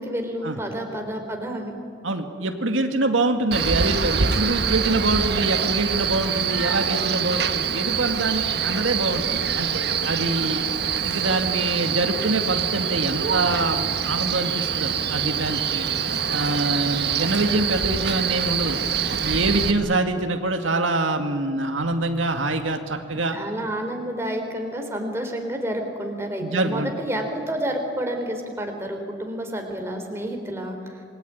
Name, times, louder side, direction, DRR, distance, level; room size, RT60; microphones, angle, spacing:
voice 1, 0.0-1.7 23.3-31.0, right 1 dB, 15° right, 3 dB, 3.8 m, -29 dB
voice 2, 2.0-9.7 10.0-10.6 11.0-15.9 16.3-18.8 19.2-23.4 26.4-26.9, right 2 dB, 85° right, 5 dB, 2.1 m, -25 dB
Male speech man speaking, 3.5-19.7, right 7 dB, 55° right, 1.4 m, -25 dB
27.5 x 21.5 x 9.5 m, 2.4 s
head